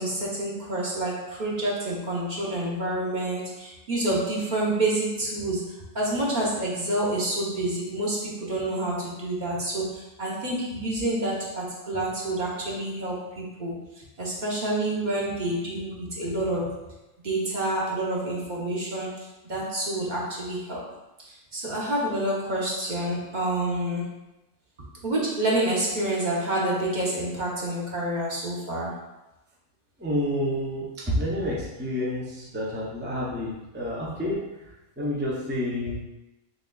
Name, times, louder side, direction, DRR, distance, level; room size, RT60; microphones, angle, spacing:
voice 1, 0.0-16.9 17.2-20.9 21.2-24.2 25.0-29.0, right 1 dB, 40° right, -5 dB, 0.9 m, -28 dB
voice 2, 30.0-30.9 31.2-34.5 35.0-36.0, left 1 dB, 15° right, -5 dB, 0.4 m, -29 dB
6.3 x 2.3 x 2.3 m, 0.97 s
omnidirectional pair, 1.3 m